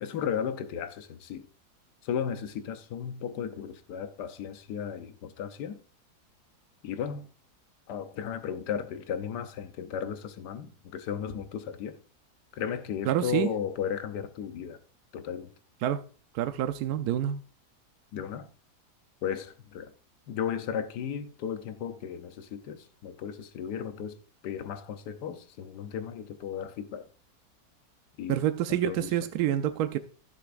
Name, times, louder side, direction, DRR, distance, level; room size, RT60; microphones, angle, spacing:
voice 1, 0.0-1.5 2.0-5.8 6.8-7.3 7.9-12.0 12.5-14.8 15.1-15.5 18.1-18.5 19.2-19.9 20.3-27.1 28.2-28.4 28.7-29.1, left 8 dB, 80° left, 1.4 m, -35 dB
voice 2, 13.1-13.5 15.8-16.0 16.3-17.4 28.3-30.0, right 11 dB, 75° right, 1.1 m, -27 dB
15.0 x 6.9 x 2.5 m
omnidirectional pair, 1.8 m